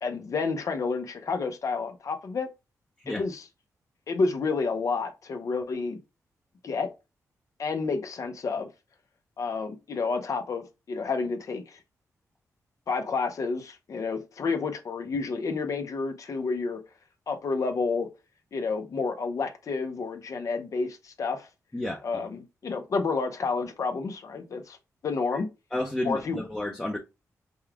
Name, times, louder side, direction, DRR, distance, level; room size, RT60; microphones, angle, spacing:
voice 1, 0.0-2.5 3.1-3.5 4.1-6.0 6.6-6.9 7.6-8.7 9.4-11.8 12.9-16.8 17.3-18.1 18.5-21.5 22.0-24.8 25.0-25.5 26.0-26.4, left 4 dB, 60° left, 0.9 m, -30 dB
voice 2, 25.7-27.0, left 1 dB, 15° left, 0.7 m, -31 dB
5.5 x 2.4 x 3.4 m
cardioid pair, 85°, 6 cm